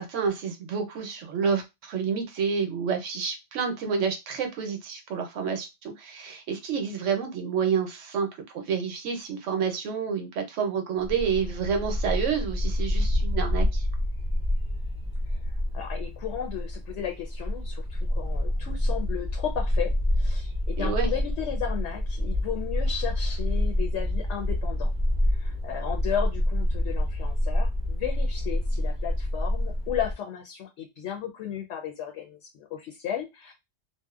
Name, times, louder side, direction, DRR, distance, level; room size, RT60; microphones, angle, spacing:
voice 1, 0.0-8.3 8.5-13.8 20.8-21.1, right 6 dB, 80° right, 5 dB, 1.0 m, -29 dB
Bark, 11.0-30.1, left 1 dB, 10° right, 0.5 m, -27 dB
voice 2, 15.3-24.9 25.3-33.5, left 9 dB, 75° left, 1 dB, 0.9 m, -34 dB
2.7 x 2.0 x 2.3 m, 0.22 s
omnidirectional pair, 1.3 m